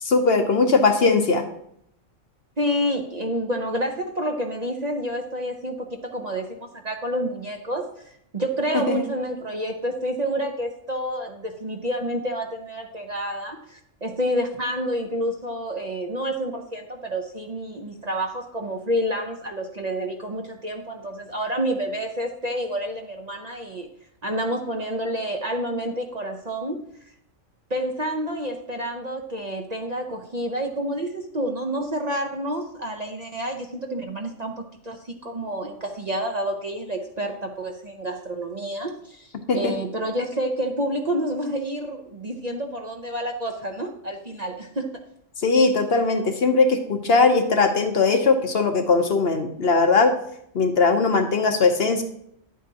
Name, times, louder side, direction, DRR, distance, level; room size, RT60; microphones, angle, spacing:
voice 1, 0.0-1.5 8.7-9.1 39.5-39.7 45.4-50.1 50.5-52.0, left 4 dB, 55° left, 6 dB, 0.9 m, -19 dB
voice 2, 2.6-23.9 24.2-26.8 27.7-34.5 34.8-44.9, equal, 40° right, 3 dB, 0.7 m, -29 dB
10.0 x 8.4 x 2.8 m, 0.71 s
omnidirectional pair, 1.4 m